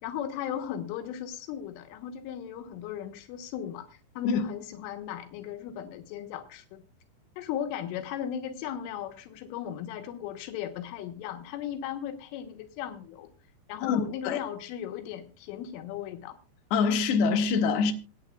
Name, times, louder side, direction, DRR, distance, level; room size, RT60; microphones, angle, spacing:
voice 1, 0.0-6.8 7.4-13.3 13.7-16.4, left 9 dB, 85° left, 3.5 m, -36 dB
voice 2, 13.9-14.4 16.7-17.9, left 5 dB, 70° left, 3.4 m, -25 dB
25.0 x 9.1 x 2.3 m
omnidirectional pair, 5.6 m